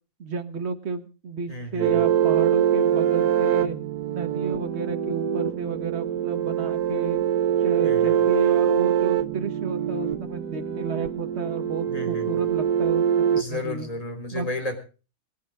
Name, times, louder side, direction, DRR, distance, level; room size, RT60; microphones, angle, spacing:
voice 1, 0.2-3.8 4.1-7.2 7.6-13.9 14.3-14.5, right 4 dB, 45° right, 8 dB, 1.7 m, -32 dB
voice 2, 1.5-1.9 7.8-8.2 11.9-12.4 13.4-14.8, left 2 dB, 20° left, 6 dB, 3.5 m, -33 dB
sound 1, 1.8-13.4, right 9 dB, 90° right, 1.6 m, -23 dB
23.0 x 11.0 x 3.6 m, 0.34 s
omnidirectional pair, 1.7 m